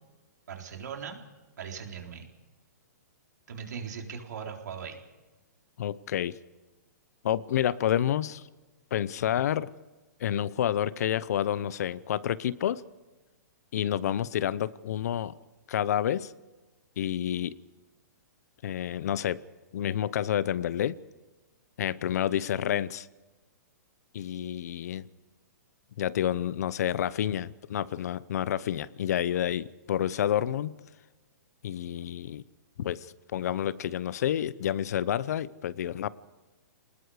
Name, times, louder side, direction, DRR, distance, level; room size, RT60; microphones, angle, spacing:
voice 1, 0.5-1.2 1.6-2.3 3.5-5.0, right 7 dB, 70° right, 2 dB, 4.0 m, -39 dB
voice 2, 5.8-6.4 7.2-8.4 8.9-9.7 10.2-12.8 13.7-15.3 15.7-16.3 17.0-17.6 18.6-19.4 19.7-21.0 21.8-23.1 24.1-25.1 26.0-30.7 31.6-32.4 32.8-33.1 33.3-36.1, left 10 dB, 60° left, 19 dB, 0.8 m, -29 dB
28.0 x 20.0 x 5.0 m, 1.2 s
hypercardioid pair, 150°, 10 cm